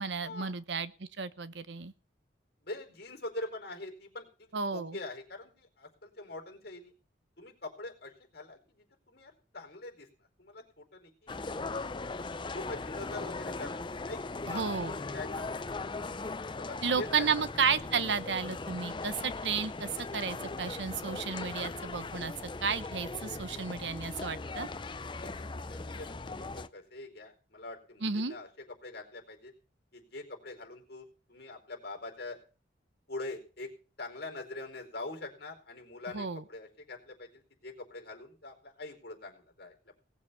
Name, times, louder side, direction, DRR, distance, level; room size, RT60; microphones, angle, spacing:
voice 1, 0.0-1.9 4.5-5.0 14.5-14.9 16.8-22.3 22.6-24.7 28.0-28.4 36.1-36.4, right 5 dB, 70° right, 14 dB, 0.9 m, -32 dB
voice 2, 2.6-6.9 7.4-10.1 10.4-11.3 12.5-14.2 14.5-15.5 16.0-16.1 16.6-17.4 25.2-29.5 29.9-32.4 33.1-33.7 34.0-39.9, left 2 dB, 55° left, 3 dB, 4.6 m, -44 dB
sound 1, 11.3-26.7, left 3 dB, 25° left, 0.6 m, -39 dB
18.5 x 7.4 x 7.0 m, 0.38 s
head